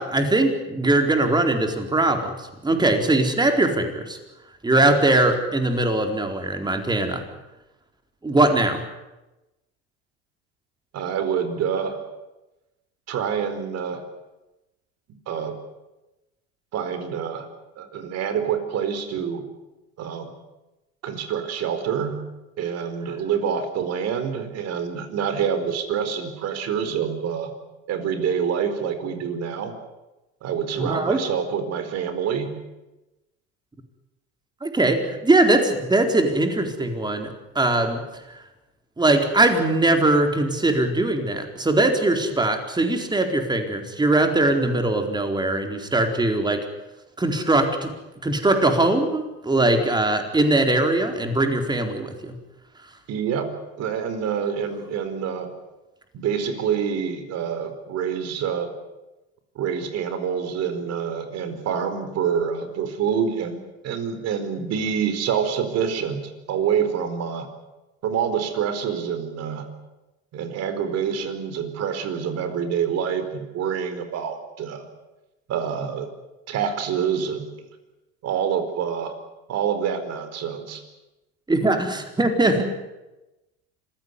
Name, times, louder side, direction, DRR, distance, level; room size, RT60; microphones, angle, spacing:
voice 1, 0.0-4.2 4.6-7.2 8.2-8.8 30.8-31.2 34.6-38.0 39.0-46.7 47.2-47.9 48.2-52.4 81.5-82.7, right 2 dB, 15° right, 5 dB, 4.3 m, -21 dB
voice 2, 10.9-12.0 13.1-14.0 15.3-15.6 16.7-17.5 17.8-19.4 20.0-20.3 21.0-22.2 22.6-27.5 27.9-29.7 30.4-32.5 53.1-53.5 53.8-55.5 56.1-58.7 59.5-63.6 63.8-67.5 68.0-69.7 70.3-74.8 75.5-76.1 76.5-77.6 78.2-79.1 79.5-80.8, right 7 dB, 50° right, 9 dB, 4.6 m, -26 dB
26.0 x 16.0 x 9.8 m, 1.0 s
supercardioid pair, 105°, 32 cm